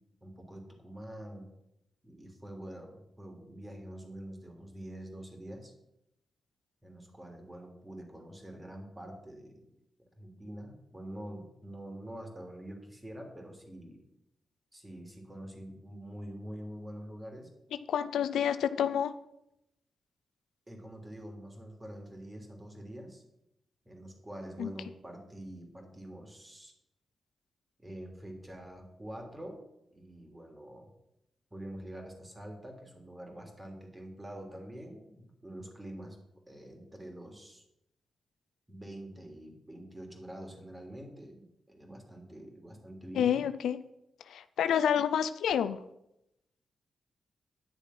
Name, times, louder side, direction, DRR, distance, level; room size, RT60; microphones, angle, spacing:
voice 1, 0.2-1.5 2.0-5.7 6.8-9.6 10.2-14.0 14.7-17.5 20.7-23.2 23.8-26.7 27.8-29.6 29.9-30.9 31.5-36.2 36.5-37.6 38.7-43.4, right 1 dB, 20° right, 2 dB, 3.1 m, -46 dB
voice 2, 17.9-19.1 24.6-24.7 43.2-43.8 44.3-45.8, left 9 dB, 85° left, 12 dB, 0.5 m, -28 dB
10.5 x 6.6 x 5.8 m, 0.84 s
cardioid pair, 60°, 0 cm